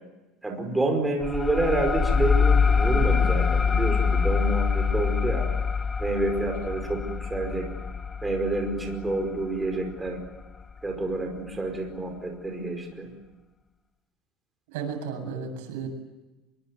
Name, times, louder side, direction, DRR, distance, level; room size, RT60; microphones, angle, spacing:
voice 1, 0.4-5.5 6.0-7.7 8.2-10.2 10.8-13.1, right 2 dB, 10° right, 3 dB, 4.9 m, -28 dB
sound 1, 1.2-10.4, left 5 dB, 15° left, 0.9 m, -25 dB
voice 2, 14.7-15.9, right 6 dB, 80° right, 5 dB, 8.0 m, -33 dB
25.5 x 22.5 x 9.4 m, 1.1 s
cardioid pair, 170°, 0 cm